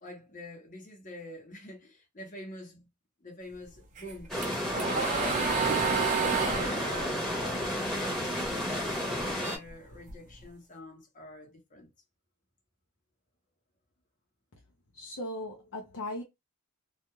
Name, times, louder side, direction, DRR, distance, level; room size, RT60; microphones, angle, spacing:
voice 1, 0.0-2.9 3.2-5.1 5.4-11.9, left 1 dB, 35° left, 1.0 m, -46 dB
sound 1, 4.0-8.5 8.9-10.4, right 5 dB, 35° right, 0.6 m, -31 dB
sound 2, 4.3-9.6, equal, ahead, 1.0 m, -32 dB
voice 2, 14.9-16.2, left 1 dB, 60° left, 0.7 m, -38 dB
2.5 x 2.2 x 3.0 m
head